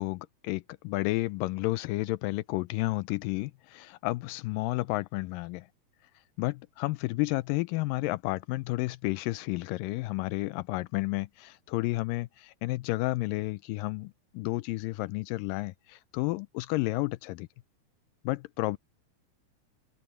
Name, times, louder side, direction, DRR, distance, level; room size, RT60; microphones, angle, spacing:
voice 1, 0.0-5.7 6.4-17.5 18.2-18.8, left 20 dB, 85° left, 1.9 m, -31 dB
omnidirectional pair, 4.5 m